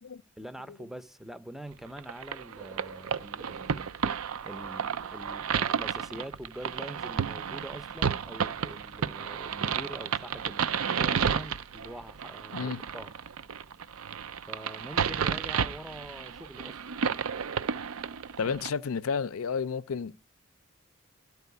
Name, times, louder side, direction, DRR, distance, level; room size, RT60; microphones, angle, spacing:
voice 1, 0.4-3.9 4.4-13.1 14.5-16.9, right 1 dB, ahead, 0.6 m, -44 dB
sound 1, 2.0-18.7, right 7 dB, 80° right, 0.5 m, -32 dB
voice 2, 12.5-12.8 18.4-20.2, left 5 dB, 85° left, 0.5 m, -31 dB
13.0 x 4.7 x 8.2 m
head